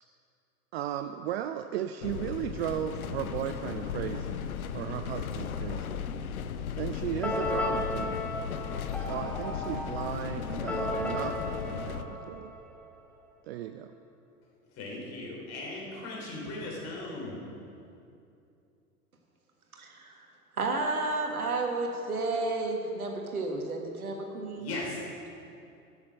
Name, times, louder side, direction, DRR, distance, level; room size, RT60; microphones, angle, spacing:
voice 1, 0.7-6.1 6.8-8.2 9.1-12.5 13.5-13.9, right 11 dB, 45° right, 8 dB, 0.5 m, -36 dB
sound 1, 2.0-12.0, left 8 dB, 75° left, 0.7 m, -36 dB
sound 2, 7.2-13.0, left 1 dB, 5° left, 1.0 m, -35 dB
voice 2, 14.8-17.4 24.5-25.0, left 2 dB, 35° left, -2 dB, 3.2 m, -38 dB
voice 3, 19.7-20.3 20.6-24.7, right 3 dB, 80° right, 2 dB, 1.6 m, -32 dB
12.5 x 7.3 x 6.3 m, 2.6 s
figure-of-eight pair, 90°, 44 cm